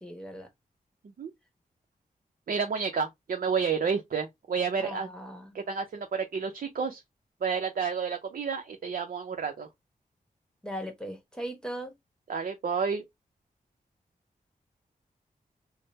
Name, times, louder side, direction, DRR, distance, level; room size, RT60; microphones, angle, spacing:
voice 1, 0.0-0.5 4.8-5.6 10.6-11.9, equal, 5° left, 1.0 m, -38 dB
voice 2, 2.5-5.1 5.5-7.0 7.4-9.7 12.3-13.0, right 6 dB, 65° right, 0.6 m, -30 dB
3.6 x 2.0 x 4.1 m
wide cardioid pair, 100°, 15 cm